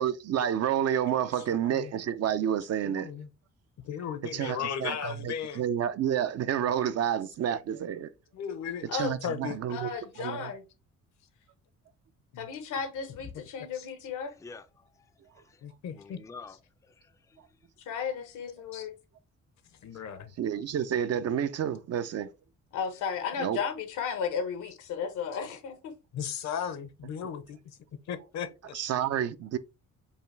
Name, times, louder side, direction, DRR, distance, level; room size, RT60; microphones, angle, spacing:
voice 1, 0.0-3.1 4.3-8.1 8.9-9.9 10.2-10.5 20.1-22.3 23.4-23.6 28.7-29.6, right 9 dB, 55° right, 0.5 m, -29 dB
voice 2, 1.4-1.9 2.8-3.3 3.8-5.6 8.3-8.9 9.2-9.6 12.3-12.5 13.7-13.9 15.6-16.2 18.7-18.9 19.8-20.3 26.1-27.6 28.1-28.9, left 8 dB, 65° left, 0.8 m, -36 dB
voice 3, 9.7-10.6 12.4-14.3 17.8-19.0 22.7-26.0, left 6 dB, 85° left, 1.0 m, -34 dB
voice 4, 14.4-16.6 16.8-17.6, left 4 dB, 10° left, 0.4 m, -50 dB
5.3 x 2.2 x 3.3 m
cardioid pair, 90°, 30 cm